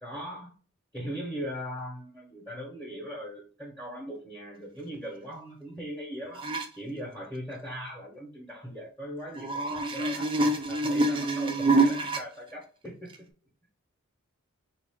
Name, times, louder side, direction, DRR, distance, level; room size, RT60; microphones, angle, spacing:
voice 1, 0.0-0.5 0.9-6.5 6.8-13.3, equal, 5° left, -3 dB, 0.9 m, -40 dB
sound 1, 6.3-6.7 9.3-12.2 13.1-13.2, right 2 dB, 25° right, 0.4 m, -26 dB
3.4 x 2.5 x 3.4 m, 0.39 s
head